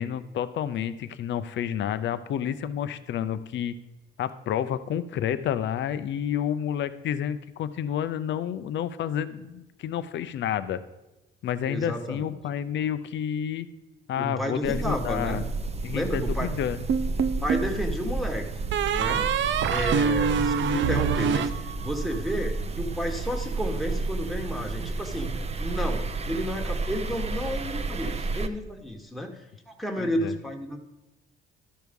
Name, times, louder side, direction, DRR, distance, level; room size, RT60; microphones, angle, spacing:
voice 1, 0.0-3.7 4.2-10.8 11.4-13.7 14.1-15.4 15.8-16.9 30.0-30.3, left 9 dB, 70° left, 13 dB, 0.6 m, -30 dB
voice 2, 11.7-12.4 14.2-15.4 15.9-16.5 17.3-18.4 18.9-19.3 19.6-30.8, equal, ahead, 1 dB, 1.3 m, -32 dB
sound 1, 14.6-28.5, right 3 dB, 30° right, 0.6 m, -31 dB
sound 2, 16.9-17.8 18.7-22.2, right 7 dB, 70° right, 0.5 m, -25 dB
12.5 x 4.7 x 5.2 m, 1.0 s
cardioid pair, 90°, 20 cm